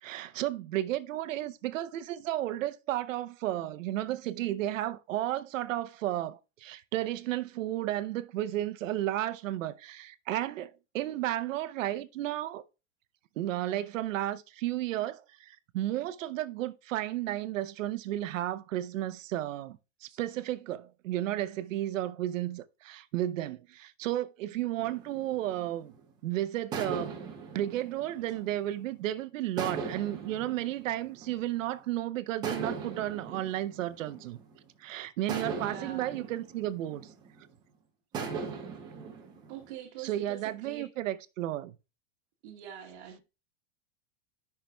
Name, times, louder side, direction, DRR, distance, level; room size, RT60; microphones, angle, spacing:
voice 1, 0.0-12.6 13.4-25.9 26.2-27.2 27.5-34.4 34.8-37.1 40.0-41.7, right 14 dB, 85° right, 0.8 m, -33 dB
sound 1, 24.8-26.1 26.7-29.0 29.6-31.7 32.4-34.7 35.3-37.5 38.1-39.7, right 5 dB, 10° right, 0.5 m, -40 dB
voice 2, 35.5-36.2 39.5-40.9 42.4-43.2, right 9 dB, 50° right, 1.3 m, -44 dB
13.5 x 5.8 x 2.2 m
supercardioid pair, 180°, 37 cm